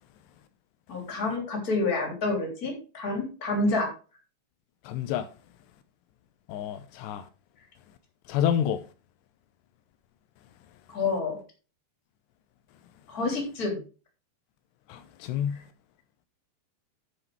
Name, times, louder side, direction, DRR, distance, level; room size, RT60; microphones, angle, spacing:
voice 1, 0.9-3.9 10.9-11.4 13.1-13.8, left 3 dB, 25° left, 3.2 m, -28 dB
voice 2, 4.8-5.3 6.5-7.3 8.3-8.8 14.9-15.6, left 9 dB, 80° left, 2.8 m, -28 dB
9.9 x 6.7 x 4.7 m
omnidirectional pair, 4.9 m